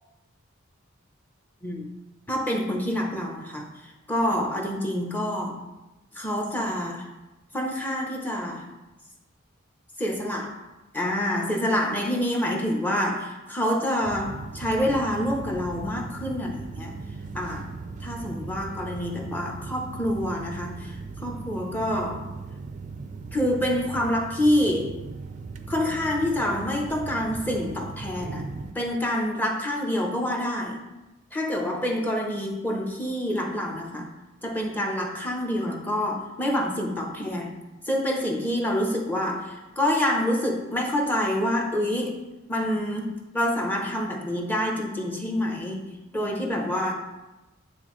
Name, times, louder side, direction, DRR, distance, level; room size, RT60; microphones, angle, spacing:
voice 1, 2.3-5.6 6.1-7.1 7.5-8.7 10.0-10.6 10.9-17.0 17.3-17.7 18.0-22.3 23.3-24.9 25.7-28.5 28.7-30.8 31.3-34.1 34.4-37.5 37.9-46.9, left 1 dB, 10° left, 1 dB, 0.7 m, -27 dB
sound 1, 14.0-28.7, right 4 dB, 35° right, 0.4 m, -38 dB
9.7 x 4.0 x 3.1 m, 1.1 s
head